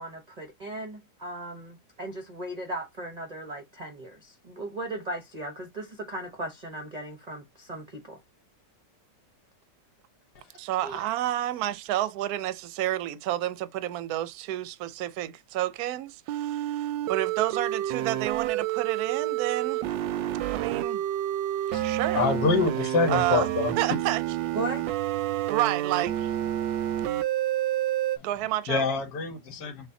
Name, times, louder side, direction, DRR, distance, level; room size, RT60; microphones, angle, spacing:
voice 1, 0.0-8.2 24.5-24.8, right 1 dB, 35° right, 0.6 m, -37 dB
voice 2, 10.6-19.8 20.5-21.0 21.8-22.2 23.1-23.5 23.8-24.2 25.5-26.3 28.2-28.8, right 14 dB, 70° right, 1.0 m, -30 dB
sound 1, 16.3-28.2, right 13 dB, 90° right, 1.3 m, -29 dB
voice 3, 21.7-24.0 28.2-28.3 28.7-29.9, left 4 dB, 70° left, 1.8 m, -27 dB
6.6 x 2.5 x 2.7 m
omnidirectional pair, 1.9 m